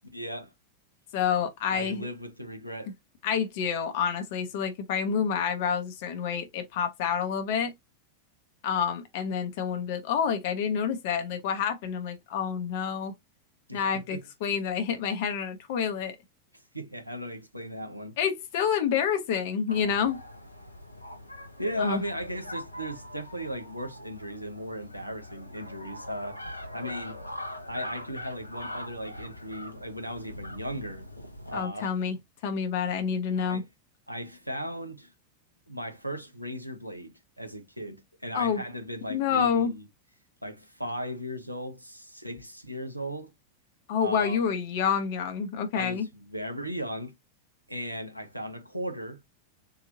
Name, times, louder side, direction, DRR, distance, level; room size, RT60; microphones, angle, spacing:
voice 1, 0.1-0.5 1.7-2.9 13.7-14.2 16.7-18.1 21.6-26.4 26.7-27.2 27.6-31.1 31.5-31.9 33.4-33.7 34.1-35.1 35.7-39.9 40.4-43.3 44.0-44.4 45.7-47.1 47.7-49.2, equal, 90° right, 0.9 m, -37 dB
voice 2, 1.1-2.0 3.2-7.7 8.6-13.1 13.7-16.2 18.2-20.2 21.8-22.0 31.5-32.2 32.4-33.6 38.3-38.6 39.1-39.7 43.9-46.1, left 7 dB, 50° left, 0.9 m, -28 dB
sound 1, 19.7-31.7, left 1 dB, 85° left, 0.7 m, -42 dB
4.0 x 2.7 x 2.7 m
figure-of-eight pair, 90°, 0 cm